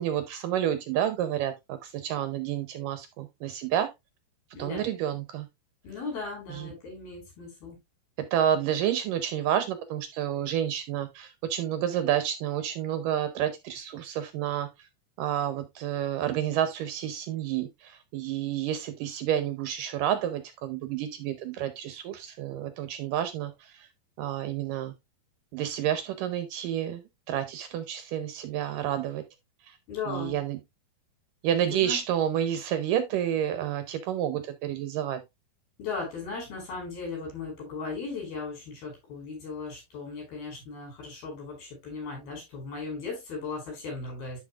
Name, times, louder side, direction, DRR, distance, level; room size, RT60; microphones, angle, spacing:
voice 1, 0.0-3.9 4.6-5.5 6.5-6.7 8.2-14.9 15.2-23.9 24.2-24.9 25.5-29.2 29.6-29.8 30.1-30.6 31.4-35.2, right 10 dB, 75° right, 2.1 m, -30 dB
voice 2, 4.5-4.9 5.8-7.8 29.9-30.4 31.7-32.0 35.8-44.4, left 4 dB, 75° left, 7.1 m, -37 dB
11.5 x 5.5 x 2.4 m
omnidirectional pair, 4.4 m